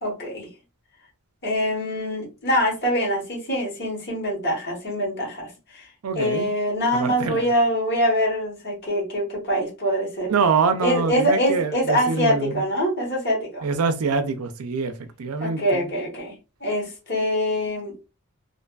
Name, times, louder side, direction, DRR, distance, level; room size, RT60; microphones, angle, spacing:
voice 1, 0.0-0.5 1.4-5.9 6.1-10.3 10.8-13.6 15.4-16.3 16.6-17.9, equal, 50° left, 1.2 m, -24 dB
voice 2, 6.0-6.5 6.9-7.5 10.3-12.6 13.6-14.9 15.2-15.8, right 5 dB, 75° right, 0.4 m, -24 dB
2.5 x 2.5 x 2.2 m
head